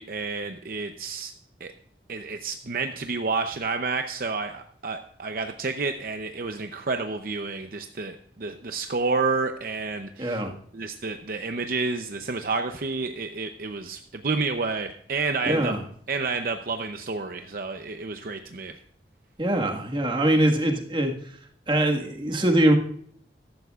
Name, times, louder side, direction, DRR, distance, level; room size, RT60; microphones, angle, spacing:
voice 1, 0.0-1.3 1.6-1.7 2.1-10.4 10.7-15.8 16.1-18.8, right 4 dB, 55° right, 6 dB, 0.7 m, -30 dB
voice 2, 10.2-10.5 15.4-15.8 19.4-21.1 21.7-22.7, right 1 dB, 25° right, 2 dB, 1.7 m, -22 dB
15.0 x 12.5 x 2.4 m, 0.63 s
head